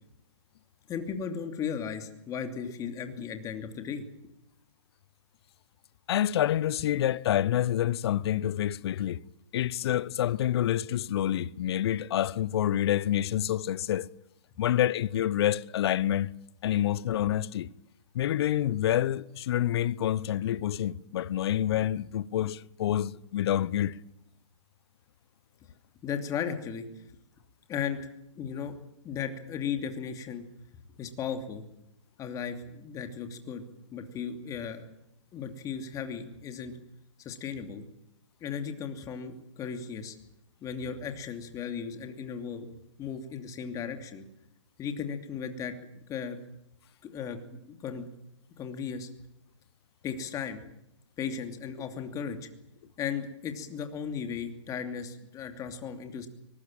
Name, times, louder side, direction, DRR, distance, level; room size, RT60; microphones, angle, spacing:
voice 1, 0.9-4.0 26.0-26.9 27.7-28.0 28.3-28.7 29.0-30.4 31.0-31.6 32.2-33.6 33.9-34.9 35.3-36.7 37.2-37.8 38.4-40.1 40.6-42.7 43.0-44.2 44.8-45.7 46.1-46.4 47.0-47.4 47.7-48.0 48.6-49.1 50.0-50.6 51.2-52.5 53.0-56.3, left 7 dB, 20° left, 2.8 m, -36 dB
voice 2, 6.1-9.2 9.5-14.1 14.6-16.3 16.6-17.7 18.1-24.0, left 11 dB, 50° left, 0.9 m, -27 dB
23.5 x 20.0 x 9.0 m
hypercardioid pair, 140°, 17 cm